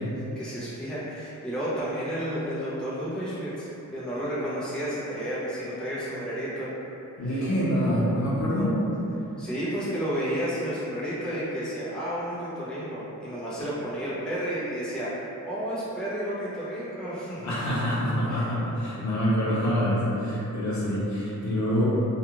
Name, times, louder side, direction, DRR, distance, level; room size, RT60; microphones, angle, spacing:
voice 1, 0.0-6.7 7.2-7.5 9.4-17.5 18.3-18.5, equal, 5° left, -10 dB, 0.7 m, -32 dB
voice 2, 7.2-8.7 17.4-21.8, equal, 65° left, -7 dB, 0.7 m, -26 dB
2.4 x 2.3 x 2.9 m, 2.9 s
wide cardioid pair, 115°, 31 cm